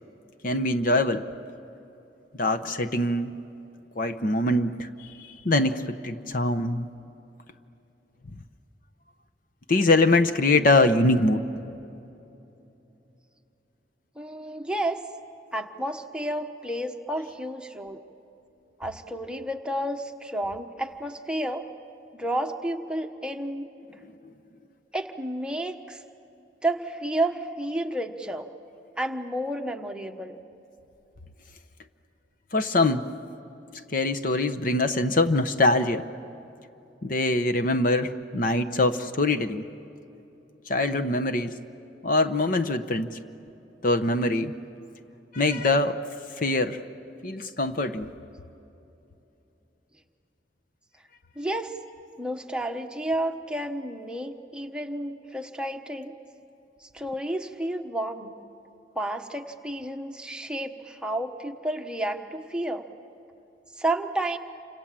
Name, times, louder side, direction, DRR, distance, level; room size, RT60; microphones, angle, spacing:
voice 1, 0.4-1.3 2.4-3.4 4.0-6.9 9.7-11.4 32.5-33.1 33.9-36.1 37.0-39.7 40.7-41.6 42.0-43.1 43.8-44.5 45.3-46.0 46.4-46.8 47.2-48.1, left 2 dB, 50° left, 9 dB, 0.9 m, -23 dB
voice 2, 14.2-15.0 15.5-18.0 18.8-21.6 22.1-23.7 24.9-26.0 26.6-28.5 29.0-30.4 51.4-51.7 52.2-56.2 56.8-58.3 58.9-62.9 63.8-64.4, right 1 dB, 5° right, 4 dB, 1.1 m, -31 dB
29.0 x 26.5 x 7.5 m, 2.9 s
head